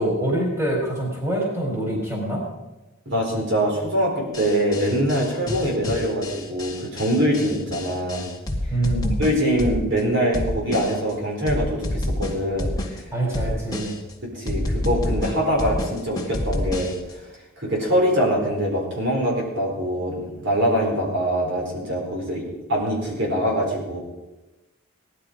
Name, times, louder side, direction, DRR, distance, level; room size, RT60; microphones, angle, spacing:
voice 1, 0.0-2.4 8.7-9.2 13.1-14.0, right 1 dB, 10° right, -2 dB, 3.9 m, -25 dB
voice 2, 3.1-8.3 9.2-13.0 14.3-16.9 17.6-24.0, equal, 60° right, -1 dB, 4.2 m, -23 dB
sound 1, 4.3-10.0 10.3-11.1 11.5-13.0 13.3-14.1 14.5-17.1, left 1 dB, 20° left, 2.0 m, -28 dB
17.5 x 11.5 x 5.1 m, 1.0 s
head